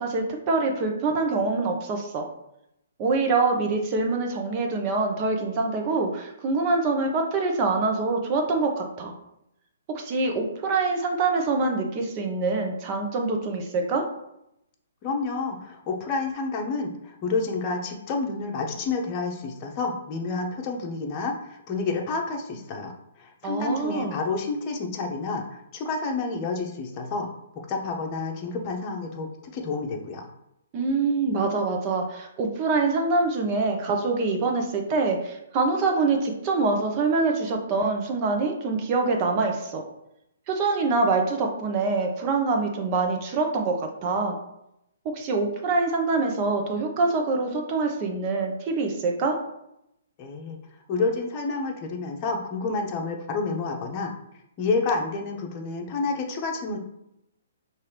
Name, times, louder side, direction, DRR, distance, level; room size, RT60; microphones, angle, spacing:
voice 1, 0.0-2.2 3.0-9.1 9.9-14.0 23.4-24.2 30.7-39.8 40.5-44.4 45.0-49.4, right 3 dB, 35° right, 2 dB, 0.9 m, -25 dB
voice 2, 15.0-22.9 23.2-27.3 27.5-30.3 50.2-50.6 50.9-54.1 54.6-56.8, left 3 dB, 30° left, 1 dB, 0.9 m, -29 dB
5.6 x 2.7 x 3.4 m, 0.82 s
hypercardioid pair, 130°, 0 cm